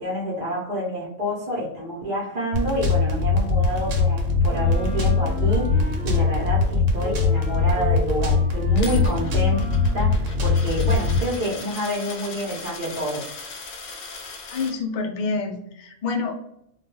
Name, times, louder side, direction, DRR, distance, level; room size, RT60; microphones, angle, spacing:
voice 1, 0.0-9.6 9.9-13.3, equal, 40° right, -5 dB, 0.7 m, -28 dB
sound 1, 2.5-11.2, left 4 dB, 80° right, 1.0 m, -21 dB
Wind instrument woodwind instrument, 4.5-6.7 7.0-10.1, left 1 dB, 10° left, 0.7 m, -37 dB
Coin (dropping), 8.8-14.7, left 4 dB, 85° left, 1.0 m, -38 dB
voice 2, 14.5-16.4, left 4 dB, 65° left, 1 dB, 0.4 m, -27 dB
2.2 x 2.2 x 3.0 m, 0.77 s
omnidirectional pair, 1.3 m